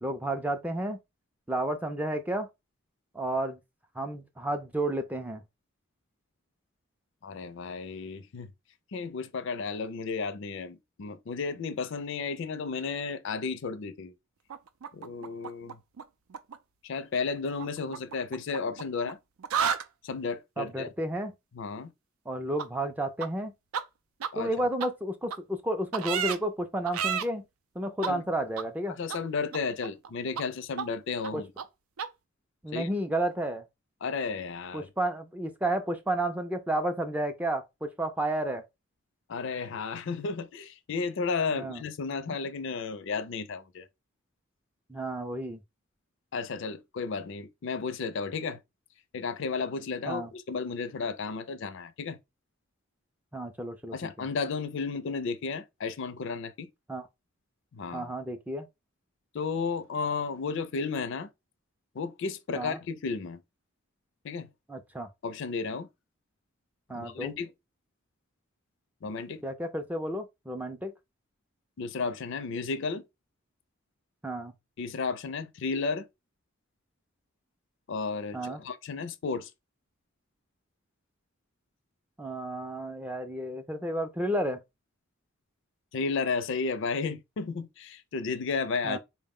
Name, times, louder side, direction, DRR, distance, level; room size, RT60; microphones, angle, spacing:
voice 1, 0.0-1.0 1.5-2.5 3.1-3.6 4.0-5.4 20.6-21.3 22.3-23.5 24.4-27.4 27.8-29.0 31.3-31.4 32.6-33.6 34.7-38.6 41.5-41.8 42.3-42.4 44.9-45.6 50.1-50.3 53.3-54.3 56.9-57.1 57.9-58.7 62.6-62.8 64.7-65.1 66.9-67.3 69.4-70.9 74.2-74.5 78.3-78.6 82.2-84.6 88.8-89.0, right 1 dB, 5° right, 0.3 m, -31 dB
voice 2, 7.2-8.5 8.9-14.1 14.9-15.8 16.8-19.2 20.0-20.9 21.5-21.9 24.3-24.5 28.1-28.2 28.9-31.5 32.7-32.9 34.0-34.9 39.3-43.9 46.3-48.6 49.1-52.2 53.9-56.7 57.7-58.1 59.3-61.3 61.9-63.4 64.2-64.5 65.2-65.9 66.9-67.5 69.0-69.4 71.8-73.0 74.8-76.1 77.9-79.5 85.9-89.0, left 4 dB, 60° left, 0.4 m, -33 dB
sound 1, 14.5-16.0 16.3-16.6 17.6-19.1 19.4-19.8 22.6-22.7 23.2-23.3 23.7-23.8 24.2-24.3 24.8-24.9 25.3-25.4 25.9-26.4 26.9-27.2 28.0-28.1 28.6-28.7 29.1-29.2 29.5-30.1 30.4-30.5 30.8-30.9 31.2-31.3 31.6-31.7 32.0-32.1, right 7 dB, 90° right, 0.4 m, -31 dB
4.1 x 2.1 x 3.5 m
head